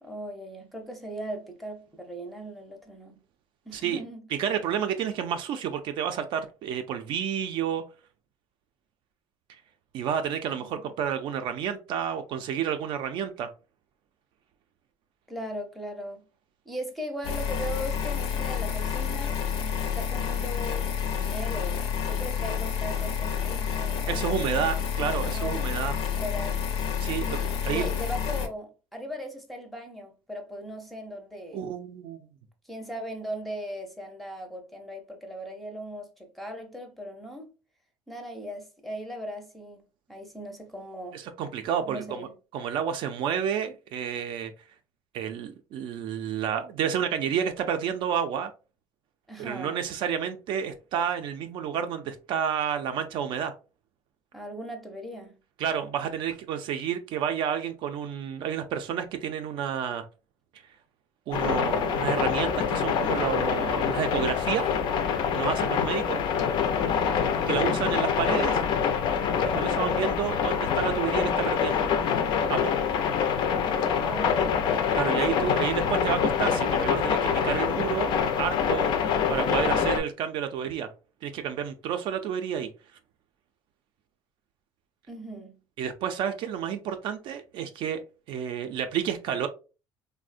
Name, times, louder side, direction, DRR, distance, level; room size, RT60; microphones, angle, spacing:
voice 1, 0.0-3.2 3.7-4.2 10.6-10.8 15.3-16.2 16.7-24.5 25.2-25.6 26.2-26.6 27.3-31.6 32.6-37.5 38.1-39.8 40.1-41.2 41.9-42.3 49.3-49.8 54.3-55.4 66.9-67.3 73.9-75.0 75.3-75.4 85.1-85.6, equal, ahead, 0.5 m, -38 dB
voice 2, 4.4-7.8 9.9-13.5 24.1-25.9 27.0-27.9 31.5-32.3 41.1-42.3 42.5-44.5 45.1-48.5 49.4-53.5 55.6-60.0 61.3-64.7 65.3-66.2 67.5-68.6 69.4-71.9 72.5-72.7 75.0-78.1 78.4-78.9 79.3-80.9 81.2-82.7 85.8-89.5, right 8 dB, 55° right, 0.4 m, -30 dB
sound 1, 17.2-28.5, left 8 dB, 90° left, 0.7 m, -29 dB
sound 2, 61.3-80.0, left 7 dB, 55° left, 0.4 m, -25 dB
3.4 x 2.1 x 2.4 m
cardioid pair, 155°, 10 cm